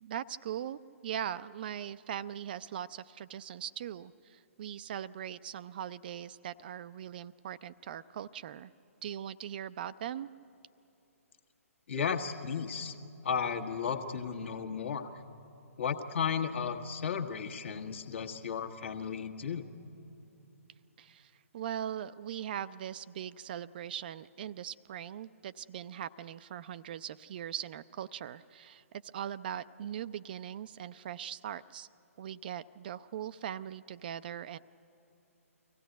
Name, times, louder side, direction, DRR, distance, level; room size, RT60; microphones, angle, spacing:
voice 1, 0.0-8.7 9.0-10.3 21.0-31.9 32.2-34.6, right 10 dB, 40° right, 14 dB, 0.4 m, -40 dB
voice 2, 11.9-12.9 13.2-15.1 15.8-19.6, left 6 dB, 55° left, 4 dB, 1.5 m, -34 dB
24.0 x 16.5 x 9.2 m, 2.9 s
figure-of-eight pair, 130°, 8 cm